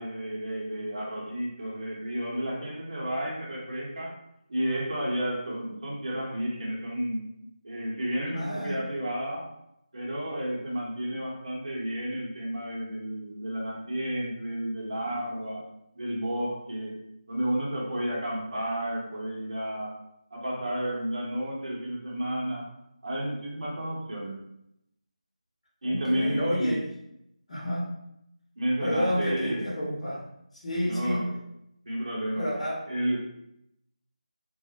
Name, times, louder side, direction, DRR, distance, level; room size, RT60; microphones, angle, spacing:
voice 1, 0.0-4.2 4.5-7.3 7.6-9.5 9.9-17.0 17.3-20.0 20.3-22.8 23.0-24.4 25.8-26.8 28.6-29.7 30.8-31.3 31.9-32.5 32.9-33.2, equal, 55° right, -4 dB, 0.9 m, -31 dB
voice 2, 8.3-8.7 25.8-26.9 27.5-27.9 28.8-30.2 30.6-31.2 32.4-32.8, equal, 60° left, -4 dB, 0.8 m, -30 dB
2.3 x 2.0 x 2.7 m, 0.79 s
figure-of-eight pair, 165°, 4 cm